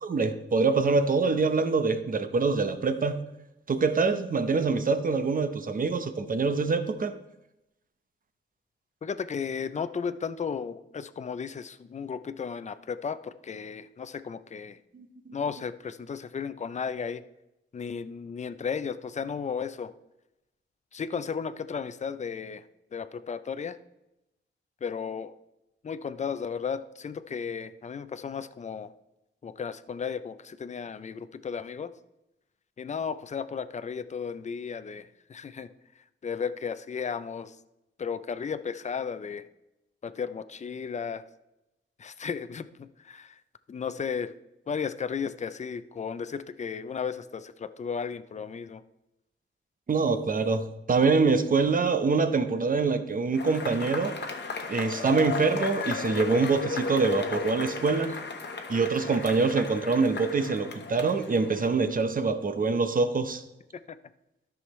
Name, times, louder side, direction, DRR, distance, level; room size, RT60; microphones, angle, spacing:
voice 1, 0.0-3.2 3.7-7.1 14.9-15.4 49.9-54.1 54.7-58.2 58.7-63.4, right 4 dB, 45° right, 10 dB, 0.8 m, -25 dB
voice 2, 9.0-14.8 15.3-17.2 17.7-19.9 20.9-22.6 22.9-23.8 24.8-25.3 25.8-28.9 29.4-31.9 32.8-35.7 36.2-37.6 38.0-39.5 40.0-41.2 42.0-43.4 43.7-44.3 44.7-48.8 63.9-64.0, left 6 dB, 35° left, 13 dB, 0.4 m, -34 dB
Cheering / Applause / Crowd, 53.3-62.0, left 4 dB, 60° left, 1.1 m, -35 dB
13.0 x 6.3 x 3.1 m, 0.92 s
wide cardioid pair, 115°, 21 cm